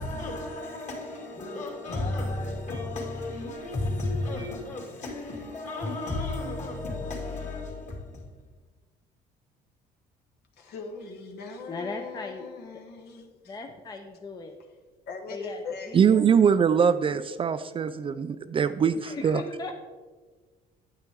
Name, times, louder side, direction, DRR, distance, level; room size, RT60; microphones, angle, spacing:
voice 1, 0.0-8.4, left 2 dB, 45° left, 2.5 m, -33 dB
voice 2, 10.6-13.6 15.1-16.0, left 4 dB, 70° left, 1.2 m, -40 dB
voice 3, 11.7-12.5 13.5-14.5 15.3-16.3 19.0-19.7, left 3 dB, 20° left, 0.6 m, -38 dB
voice 4, 15.9-19.4, right 7 dB, 30° right, 0.3 m, -22 dB
9.0 x 8.8 x 3.5 m
cardioid pair, 110°, 17 cm